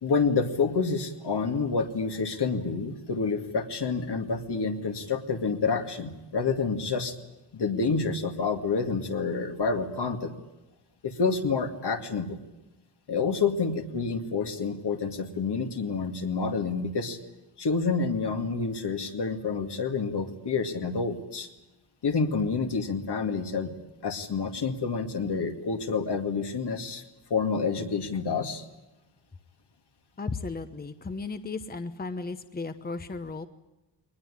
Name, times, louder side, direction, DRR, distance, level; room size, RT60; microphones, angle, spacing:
voice 1, 0.0-7.2 7.5-10.4 11.0-12.4 13.1-17.2 17.6-21.5 22.0-23.7 24.0-27.0 27.3-28.6, left 4 dB, 65° left, 6 dB, 2.3 m, -28 dB
voice 2, 30.2-33.5, left 4 dB, 20° left, 10 dB, 1.0 m, -35 dB
22.5 x 20.0 x 9.9 m, 0.99 s
wide cardioid pair, 130°, 44 cm